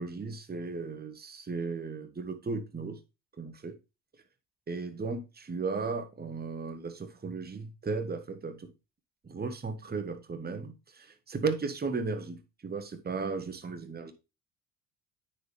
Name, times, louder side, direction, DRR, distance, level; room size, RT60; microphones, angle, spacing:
voice 1, 0.0-3.0 3.4-3.7 4.7-8.7 9.2-14.1, right 4 dB, 20° right, 8 dB, 1.2 m, -35 dB
9.2 x 4.3 x 3.3 m, 0.27 s
hypercardioid pair, 55°, 47 cm